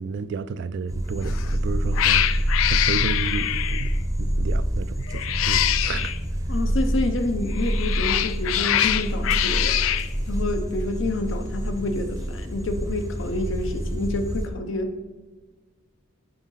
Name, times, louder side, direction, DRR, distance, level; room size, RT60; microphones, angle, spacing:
voice 1, 0.0-2.2 2.7-3.9 4.2-6.2, right 5 dB, 60° right, 0.3 m, -32 dB
sound 1, 0.9-14.5, equal, 15° right, 0.6 m, -27 dB
Cat, 1.2-1.5 1.9-4.0 5.1-6.2 7.5-10.1, left 12 dB, 85° left, 0.3 m, -24 dB
voice 2, 6.5-9.8 10.3-15.1, left 2 dB, 65° left, 0.7 m, -28 dB
9.0 x 4.1 x 3.9 m
head